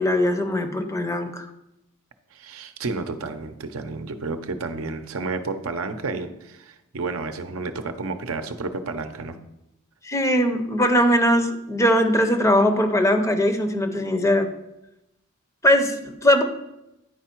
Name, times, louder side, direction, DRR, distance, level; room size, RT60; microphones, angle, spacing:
voice 1, 0.0-1.5 10.0-14.5 15.6-16.4, equal, 15° left, 7 dB, 0.6 m, -20 dB
voice 2, 2.3-9.4, right 3 dB, 70° right, 8 dB, 0.7 m, -31 dB
9.9 x 4.6 x 4.4 m, 0.87 s
head